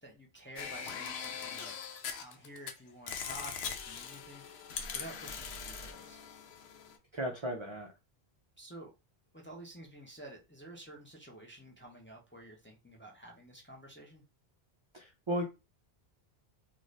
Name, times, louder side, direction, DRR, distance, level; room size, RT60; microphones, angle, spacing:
voice 1, 0.0-1.7 2.2-6.3 8.6-8.9 9.3-14.2, right 1 dB, 15° left, 0.5 m, -50 dB
sound 1, 0.6-2.7 3.1-7.0, left 6 dB, 85° left, 0.8 m, -41 dB
voice 2, 7.1-7.9 14.9-15.4, equal, 45° right, 0.4 m, -35 dB
2.6 x 2.4 x 3.1 m
omnidirectional pair, 1.1 m